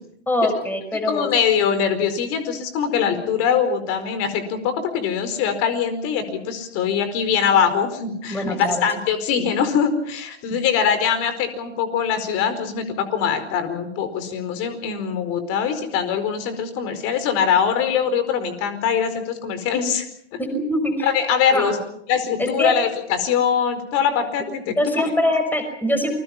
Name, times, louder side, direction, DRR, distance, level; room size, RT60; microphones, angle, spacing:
voice 1, 0.3-1.3 8.3-8.9 10.5-10.6 20.4-21.2 21.5-21.7 22.4-22.7 24.8-26.1, left 1 dB, 5° left, 7 dB, 5.5 m, -23 dB
voice 2, 1.1-20.1 20.3-20.4 21.0-21.8 22.1-24.7, left 7 dB, 40° left, 10 dB, 4.8 m, -22 dB
28.5 x 21.5 x 6.0 m, 0.71 s
hypercardioid pair, 110°, 35 cm